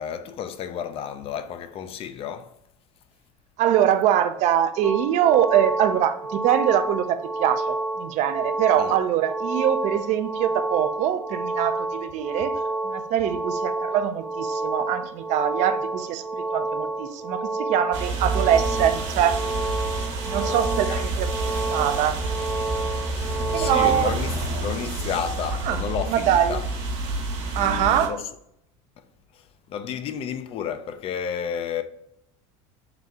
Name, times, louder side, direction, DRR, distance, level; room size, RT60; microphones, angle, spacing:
voice 1, 0.0-2.5 8.8-9.0 20.3-21.1 23.1-24.3 24.6-26.7 27.5-28.3 29.3-31.8, left 8 dB, 40° left, 0.4 m, -32 dB
voice 2, 3.6-19.5 20.3-21.3 21.7-22.2 23.5-24.2 25.7-25.8 26.1-26.6 27.6-28.2, right 10 dB, 55° right, 0.4 m, -23 dB
sound 1, 4.8-24.0, right 2 dB, ahead, 0.7 m, -29 dB
sound 2, 17.9-28.1, right 2 dB, 80° right, 1.1 m, -29 dB
3.9 x 2.3 x 4.1 m
supercardioid pair, 110°, 15 cm